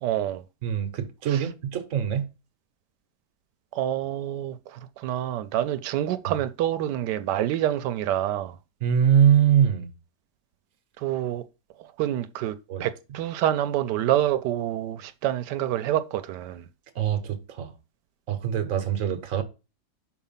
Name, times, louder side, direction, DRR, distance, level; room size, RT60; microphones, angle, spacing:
voice 1, 0.0-0.4 1.3-1.4 3.7-8.6 11.0-11.4 11.8-16.6, right 12 dB, 90° right, 1.2 m, -27 dB
voice 2, 0.6-2.3 8.8-9.9 12.7-12.9 16.9-17.7 18.3-19.4, right 9 dB, 55° right, 1.3 m, -23 dB
5.8 x 4.4 x 5.6 m
omnidirectional pair, 1.8 m